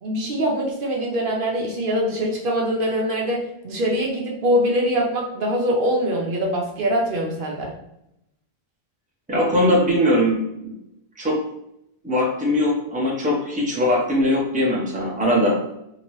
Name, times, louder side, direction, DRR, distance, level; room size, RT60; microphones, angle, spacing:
voice 1, 0.0-3.4 3.6-7.7, equal, 60° right, -1 dB, 0.8 m, -23 dB
voice 2, 9.3-10.7 11.2-11.4 12.0-15.6, left 1 dB, 10° right, -3 dB, 0.7 m, -20 dB
2.9 x 2.8 x 3.0 m, 0.83 s
omnidirectional pair, 1.0 m